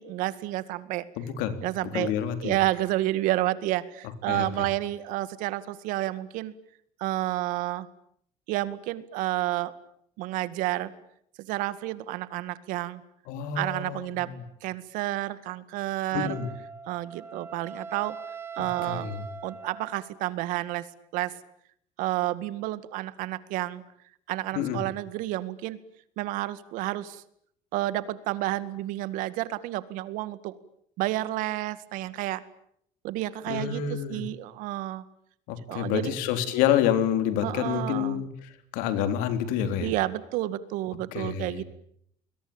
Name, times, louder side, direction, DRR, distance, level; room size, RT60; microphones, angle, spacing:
voice 1, 0.0-1.0 1.6-2.1 2.4-6.5 7.0-7.9 8.5-9.7 10.2-10.9 11.5-13.0 13.5-14.3 14.6-16.4 16.9-18.2 18.6-19.1 19.4-20.9 21.1-21.3 22.0-23.8 24.3-25.8 26.2-27.2 27.7-30.6 31.0-32.4 33.0-35.0 35.7-36.1 37.4-38.2 39.8-41.6, right 16 dB, 75° right, 15 dB, 2.0 m, -30 dB
voice 2, 1.2-1.6 1.9-2.6 4.3-4.7 13.3-14.4 16.1-16.5 18.8-19.2 24.5-24.8 33.5-34.2 35.5-39.9 41.1-41.6, left 9 dB, 85° left, 10 dB, 3.9 m, -28 dB
Wind instrument woodwind instrument, 16.2-20.2, right 5 dB, 15° right, 1.4 m, -42 dB
30.0 x 22.0 x 8.9 m, 0.69 s
cardioid pair, 155°, 14 cm